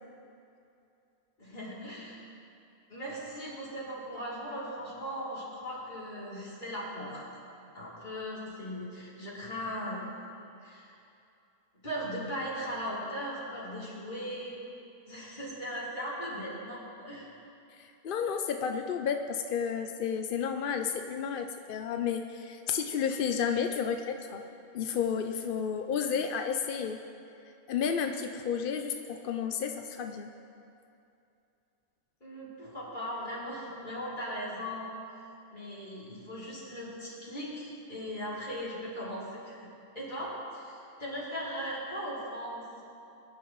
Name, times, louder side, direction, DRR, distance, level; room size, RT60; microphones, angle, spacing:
voice 1, 1.4-2.2 2.9-7.2 7.7-10.0 10.6-10.9 11.8-14.5 15.1-17.3 32.2-34.9 35.5-39.7 39.9-42.8, equal, 35° left, -8 dB, 3.9 m, -38 dB
voice 2, 17.7-24.5 24.7-27.0 27.7-30.3, left 7 dB, 60° left, 5 dB, 0.5 m, -32 dB
22.0 x 11.0 x 3.1 m, 2.7 s
omnidirectional pair, 1.5 m